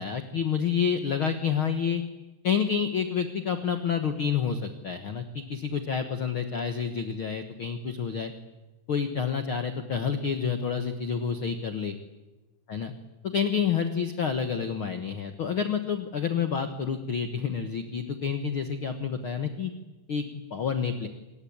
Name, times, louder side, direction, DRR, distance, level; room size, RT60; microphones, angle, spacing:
voice 1, 0.0-2.0 2.4-8.3 8.9-11.9 12.7-12.9 13.2-19.7 20.1-20.2 20.5-21.1, left 7 dB, 65° left, 8 dB, 1.2 m, -29 dB
27.0 x 23.5 x 8.8 m, 1.1 s
omnidirectional pair, 4.7 m